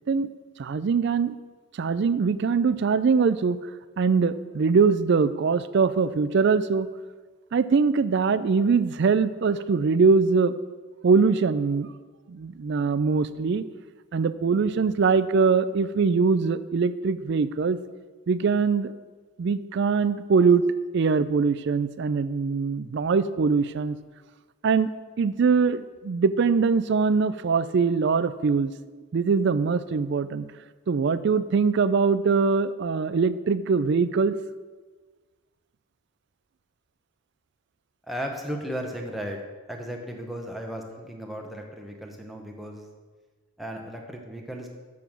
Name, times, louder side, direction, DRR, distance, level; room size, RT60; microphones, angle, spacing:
voice 1, 0.6-1.3 1.7-3.6 4.0-6.9 7.5-10.5 11.0-11.9 12.3-13.6 14.1-17.8 18.3-18.9 19.4-20.6 20.9-24.0 24.6-24.9 25.2-28.7 29.1-30.5 30.9-34.4, right 5 dB, 50° right, 15 dB, 0.3 m, -22 dB
voice 2, 38.1-39.4 39.7-42.9 43.6-44.7, equal, ahead, 1 dB, 0.9 m, -35 dB
7.1 x 6.9 x 6.1 m, 1.4 s
head